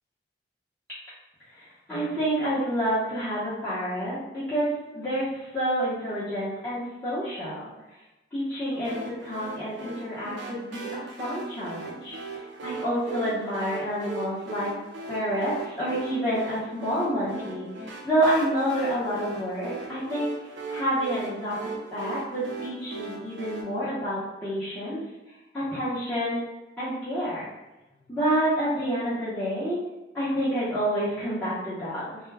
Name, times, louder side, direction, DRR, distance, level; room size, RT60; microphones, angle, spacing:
voice 1, 1.5-7.7 8.3-14.7 15.1-20.3 20.7-25.0 25.5-26.4 26.8-27.4 28.1-29.8 30.1-32.2, right 1 dB, 10° left, -15 dB, 0.8 m, -28 dB
sound 1, 8.8-23.6, right 3 dB, 90° right, 0.5 m, -39 dB
2.2 x 2.2 x 3.2 m, 1.0 s
head